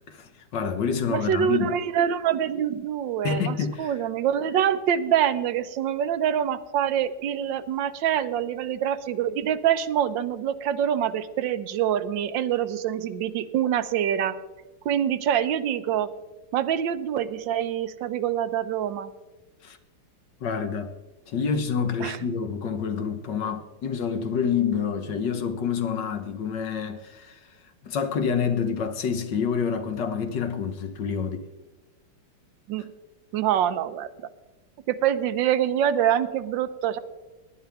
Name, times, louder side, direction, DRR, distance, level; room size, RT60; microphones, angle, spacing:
voice 1, 0.1-1.7 3.2-3.9 19.6-19.8 20.4-20.9 21.3-27.4 27.8-31.5, left 6 dB, 60° left, 1.5 m, -28 dB
voice 2, 1.1-14.4 14.8-16.1 16.5-19.1 22.0-22.2 32.7-32.9 33.3-34.1 34.9-37.0, right 9 dB, 70° right, 1.3 m, -25 dB
18.5 x 11.0 x 3.5 m
omnidirectional pair, 2.4 m